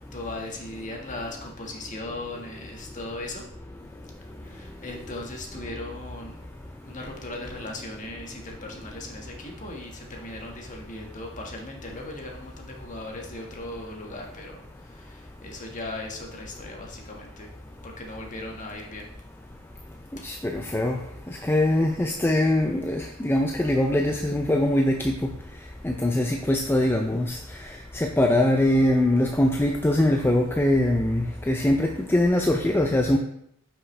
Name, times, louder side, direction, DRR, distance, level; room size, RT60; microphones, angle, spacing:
voice 1, 0.1-3.4 4.4-6.4 6.9-17.5 17.8-19.1 20.2-20.3, left 2 dB, 35° left, 0 dB, 1.6 m, -38 dB
voice 2, 20.2-21.0 21.4-25.1 25.8-27.4 27.9-33.2, left 1 dB, 10° left, 3 dB, 0.5 m, -22 dB
9.5 x 6.1 x 3.3 m, 0.73 s
head